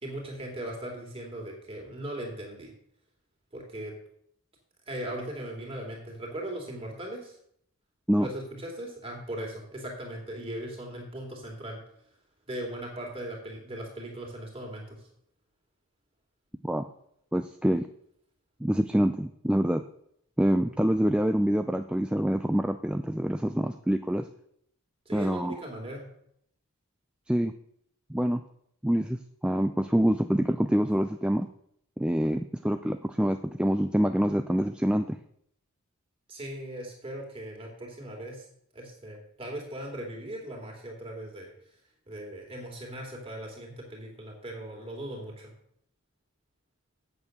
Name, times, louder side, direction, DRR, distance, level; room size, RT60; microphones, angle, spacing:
voice 1, 0.0-2.7 3.5-3.9 4.9-7.4 8.2-11.8 12.5-15.0 25.0-26.1 36.3-38.4 38.7-41.5 42.1-45.5, right 1 dB, 25° right, 0 dB, 2.9 m, -38 dB
voice 2, 17.3-17.9 18.6-19.8 20.4-24.3 25.1-25.6 27.3-27.5 28.1-28.4 28.8-29.2 29.4-31.5 32.0-35.2, equal, 5° right, 8 dB, 0.3 m, -26 dB
8.6 x 6.8 x 7.9 m, 0.70 s
head